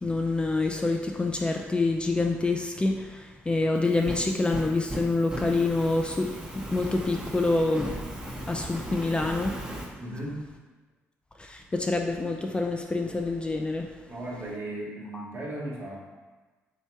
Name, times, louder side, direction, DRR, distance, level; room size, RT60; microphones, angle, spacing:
voice 1, 0.0-8.0 8.5-9.6 11.4-13.9 15.1-15.2, left 3 dB, 20° left, 2 dB, 0.4 m, -27 dB
Fire, 3.8-9.9, right 1 dB, 15° right, 0.8 m, -37 dB
voice 2, 10.0-10.4 14.1-16.0, right 1 dB, 50° right, -4 dB, 1.3 m, -36 dB
3.2 x 2.9 x 4.5 m, 1.3 s
supercardioid pair, 65°, 5 cm